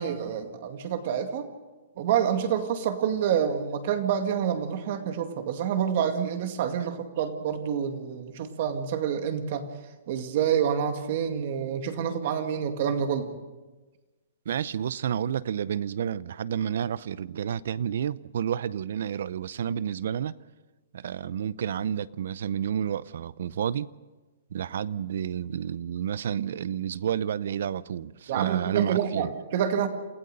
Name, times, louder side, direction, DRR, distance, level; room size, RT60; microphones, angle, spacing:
voice 1, 0.0-1.5 2.0-9.6 10.1-13.3 28.3-29.9, right 8 dB, 45° right, 2.1 m, -27 dB
voice 2, 14.5-20.3 20.9-23.9 24.5-29.3, right 9 dB, 65° right, 0.6 m, -30 dB
28.0 x 15.5 x 6.7 m
hypercardioid pair, 160°, 0 cm